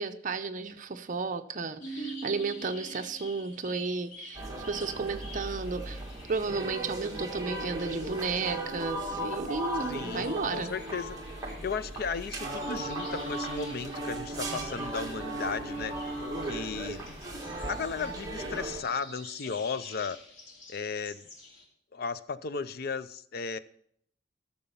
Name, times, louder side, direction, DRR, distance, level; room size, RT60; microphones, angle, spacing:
voice 1, 0.0-6.0 6.3-10.7, right 4 dB, 45° right, 7 dB, 0.7 m, -33 dB
sound 1, 1.8-21.6, equal, 90° left, 2.9 m, -47 dB
sound 2, 4.3-18.8, right 2 dB, 20° right, 1.6 m, -37 dB
voice 2, 9.9-11.1 11.6-15.9 16.4-17.1 17.7-20.2 20.7-21.3 21.9-23.6, left 5 dB, 55° left, 14 dB, 0.5 m, -35 dB
12.5 x 7.0 x 5.5 m, 0.66 s
head